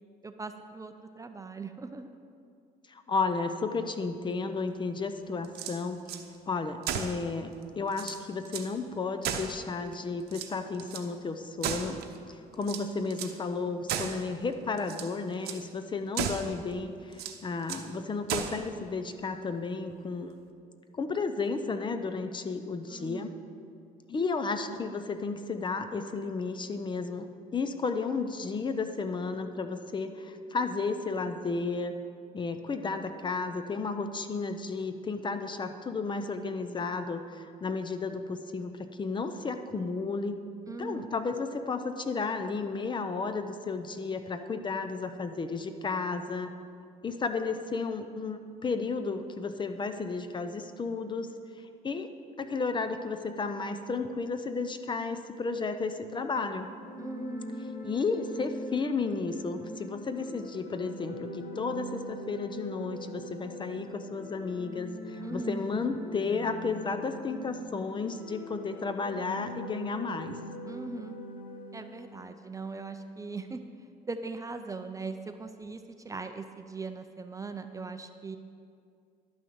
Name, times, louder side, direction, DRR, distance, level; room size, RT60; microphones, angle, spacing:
voice 1, 0.2-2.1 22.9-23.4 40.7-41.1 57.0-57.8 65.2-65.6 70.7-71.2 71.7-73.7 74.1-78.4, right 3 dB, 20° right, 8 dB, 0.5 m, -40 dB
voice 2, 2.9-6.0 6.5-12.0 12.3-20.3 20.9-23.3 24.1-32.0 32.3-40.4 40.8-46.5 47.0-51.3 51.6-52.1 52.4-56.7 57.8-70.4, left 4 dB, 30° left, 9 dB, 0.6 m, -33 dB
sound 1, 5.4-6.2 6.8-7.2 7.6-7.7 7.9-8.7 9.2-9.9 10.3-11.1 11.6-12.2 12.6-13.4 13.9-14.3 14.8-15.1 15.4-15.6 16.1-16.6 17.1-17.9 18.3-18.7, right 8 dB, 70° right, 0.8 m, -35 dB
sound 2, 56.5-72.2, left 1 dB, 55° left, 1.2 m, -42 dB
11.5 x 6.1 x 6.9 m, 2.3 s
cardioid pair, 110°, 17 cm